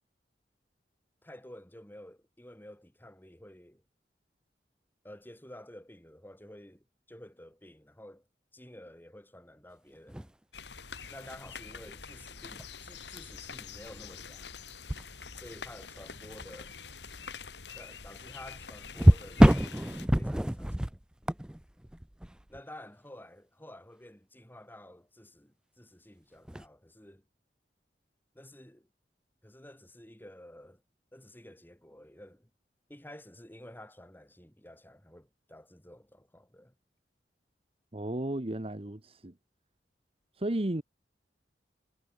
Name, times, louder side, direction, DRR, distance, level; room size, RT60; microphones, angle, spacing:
voice 1, 1.2-3.8 5.0-8.3 8.5-10.3 11.1-14.5 15.3-16.8 17.7-21.0 22.5-27.3 28.3-28.9 29.4-30.8 31.1-32.5 32.9-36.7, left 1 dB, 10° left, 2.9 m, -51 dB
sound 1, 9.9-10.3 11.8-12.0 12.6-12.7 14.9-15.7 16.3-16.5 18.9-22.6 26.4-26.7, equal, 5° right, 0.4 m, -25 dB
sound 2, 10.5-20.1, left 5 dB, 85° left, 2.9 m, -46 dB
voice 2, 37.9-39.3 40.4-40.8, right 1 dB, 35° right, 1.2 m, -33 dB
head